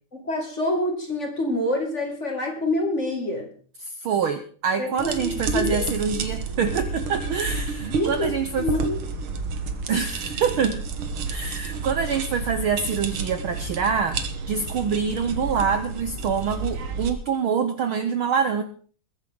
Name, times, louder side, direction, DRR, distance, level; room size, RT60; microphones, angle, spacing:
voice 1, 0.2-3.5 4.8-5.8 7.8-8.3 8.6-9.0, left 1 dB, 25° left, 2 dB, 2.1 m, -26 dB
voice 2, 3.8-8.7 9.9-10.8 11.3-14.2 14.5-18.6, right 6 dB, 80° right, 9 dB, 1.1 m, -25 dB
sound 1, 5.0-17.1, right 4 dB, 55° right, 1.7 m, -30 dB
21.0 x 10.0 x 3.8 m, 0.43 s
omnidirectional pair, 3.5 m